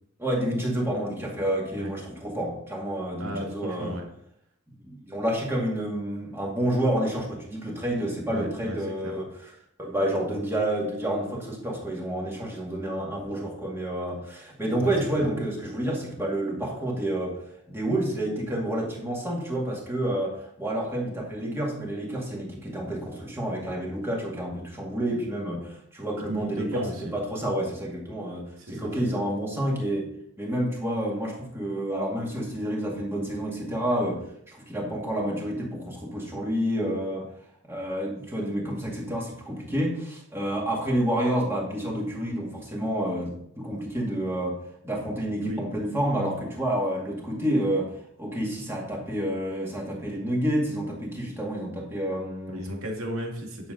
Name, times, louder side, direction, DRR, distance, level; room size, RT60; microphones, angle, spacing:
voice 1, 0.2-3.9 4.7-9.3 9.8-17.4 17.7-30.1 30.4-37.3 37.6-44.6 44.8-47.9 48.2-52.6, right 1 dB, 10° right, -3 dB, 2.2 m, -29 dB
voice 2, 3.2-4.0 8.3-8.8 9.0-9.2 14.7-14.9 15.2-15.3 26.3-27.1 28.6-29.2 45.4-45.6 52.5-53.7, right 1 dB, 85° right, 1 dB, 2.1 m, -34 dB
10.5 x 7.0 x 3.9 m, 0.72 s
head